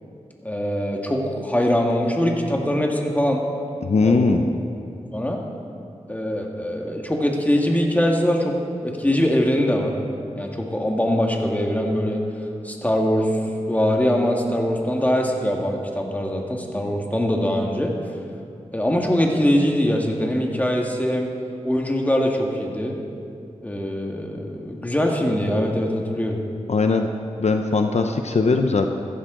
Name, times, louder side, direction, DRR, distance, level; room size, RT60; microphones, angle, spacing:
voice 1, 0.4-3.4 4.0-4.2 5.1-5.4 6.1-10.0 10.3-12.2 12.6-13.4 13.7-17.9 18.7-21.3 21.6-23.0 23.6-26.4, equal, 10° left, 1 dB, 1.7 m, -22 dB
voice 2, 3.8-4.4 26.7-27.1 27.4-28.9, left 3 dB, 65° left, 5 dB, 0.7 m, -20 dB
15.0 x 14.5 x 3.8 m, 2.4 s
wide cardioid pair, 80°, 12 cm